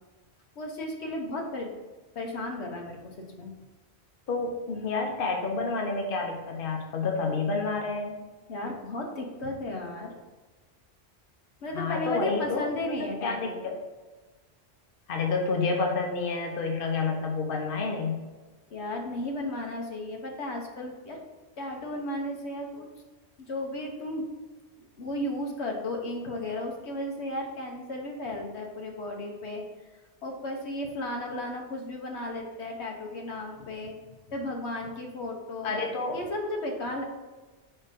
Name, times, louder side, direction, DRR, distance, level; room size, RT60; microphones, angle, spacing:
voice 1, 0.6-1.7 2.1-3.5 8.5-10.1 11.6-13.6 18.7-21.2 21.6-22.9 23.4-24.3 24.8-29.6 30.2-34.0 34.3-35.7 36.1-37.0, left 1 dB, 80° left, 1 dB, 1.2 m, -34 dB
voice 2, 4.3-8.2 11.7-12.9 13.2-13.5 15.1-18.2 35.6-36.2, left 4 dB, 55° left, 1 dB, 1.0 m, -29 dB
5.0 x 4.4 x 5.0 m, 1.3 s
omnidirectional pair, 1.1 m